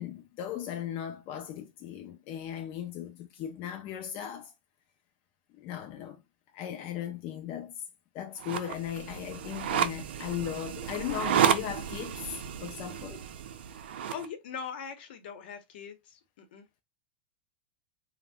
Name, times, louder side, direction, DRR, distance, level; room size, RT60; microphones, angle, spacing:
voice 1, 0.0-4.5 5.5-6.2 6.5-7.8 8.1-13.2, left 10 dB, 35° left, 0.3 m, -37 dB
sound 1, 8.4-14.2, right 9 dB, 85° right, 0.4 m, -31 dB
voice 2, 14.1-16.0 16.4-16.6, left 6 dB, 70° left, 0.7 m, -40 dB
2.6 x 2.0 x 3.2 m
supercardioid pair, 160°, 6 cm